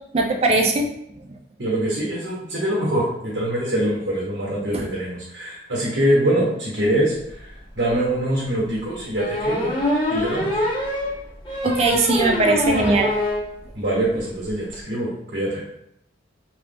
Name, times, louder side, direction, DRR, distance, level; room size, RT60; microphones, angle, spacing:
voice 1, 0.1-0.9 11.6-13.1, right 2 dB, 30° right, 3 dB, 0.3 m, -19 dB
voice 2, 1.6-9.7 10.1-10.6 13.7-15.6, right 1 dB, 75° right, -6 dB, 1.0 m, -24 dB
sound 1, 7.4-7.5 7.9-8.0 9.2-13.5 13.8-13.9 14.2-14.3 14.5-14.7, left 1 dB, 25° left, 0.6 m, -24 dB
3.0 x 2.0 x 3.4 m, 0.76 s
head